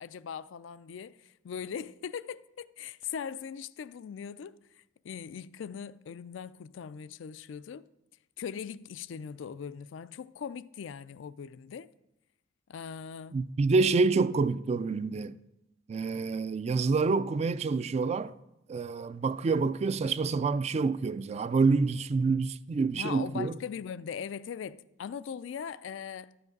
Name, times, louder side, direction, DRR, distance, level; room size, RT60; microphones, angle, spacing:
voice 1, 0.0-4.6 5.0-7.9 8.4-11.9 12.7-13.4 22.9-26.3, left 7 dB, 75° left, 0.4 m, -40 dB
voice 2, 13.3-15.3 15.9-18.3 18.7-23.6, right 4 dB, 35° right, 0.3 m, -27 dB
12.0 x 5.9 x 5.3 m
head